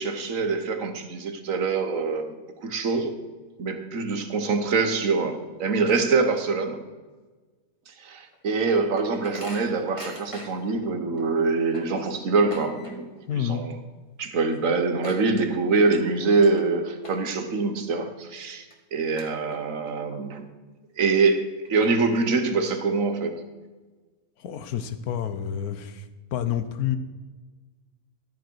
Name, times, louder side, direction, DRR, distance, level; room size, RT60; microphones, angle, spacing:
voice 1, 0.0-2.3 2.6-3.1 3.6-6.8 7.9-13.1 13.4-13.7 14.2-18.6 18.9-20.4 21.0-23.4, right 4 dB, 55° right, 7 dB, 1.5 m, -24 dB
sound 1, 8.3-10.8 11.2-11.3 11.5-13.3 13.5-13.9 14.2-14.3 14.5-15.9 16.4-16.6 17.0-17.5 18.0-18.1 18.7-18.8 19.2-19.9 20.3-20.4 21.1-21.2 21.6-22.5, left 1 dB, 20° left, 1.7 m, -43 dB
voice 2, 13.3-13.6 24.4-26.0 26.3-27.0, left 10 dB, 70° left, 11 dB, 1.3 m, -28 dB
13.0 x 9.1 x 4.6 m, 1.3 s
omnidirectional pair, 1.7 m